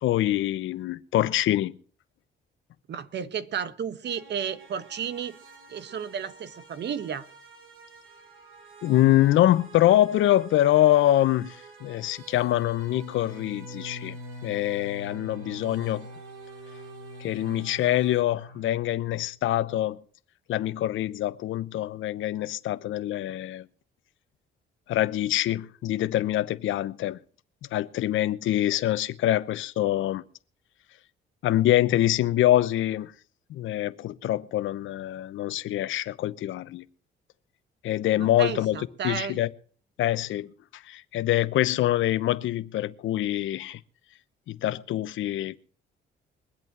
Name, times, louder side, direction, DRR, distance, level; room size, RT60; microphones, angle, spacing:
voice 1, 0.0-1.8 8.8-14.2 14.4-16.1 17.2-20.0 20.5-23.7 24.9-27.2 27.7-30.2 31.4-33.1 33.5-36.8 37.8-38.8 39.0-39.5 40.0-43.8 44.5-45.6, left 13 dB, 80° left, 0.9 m, -25 dB
voice 2, 2.9-5.4 5.7-7.3 38.2-39.4, right 7 dB, 60° right, 1.3 m, -33 dB
sound 1, 4.0-18.2, right 5 dB, 80° right, 3.6 m, -49 dB
Bowed string instrument, 12.8-19.4, left 2 dB, 45° right, 6.6 m, -44 dB
22.5 x 8.4 x 6.0 m
cardioid pair, 90°, 20 cm